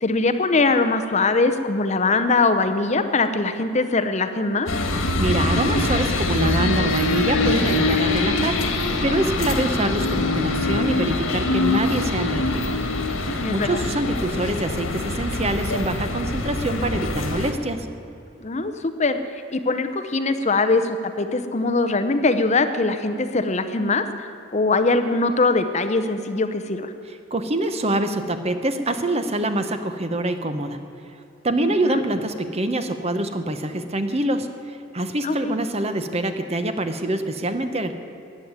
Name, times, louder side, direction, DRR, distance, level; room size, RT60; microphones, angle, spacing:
voice 1, 0.0-4.7 13.2-13.9 18.4-19.2 19.5-26.9 31.8-32.0 35.2-35.5, left 3 dB, 35° left, 9 dB, 0.7 m, -22 dB
sound 1, 4.7-17.5, left 2 dB, 90° left, 1.8 m, -24 dB
voice 2, 5.2-8.6 9.0-12.6 13.5-17.9 27.3-30.8 31.4-34.5 34.9-37.9, right 1 dB, 30° right, 8 dB, 0.9 m, -25 dB
14.0 x 9.5 x 9.5 m, 2.7 s
head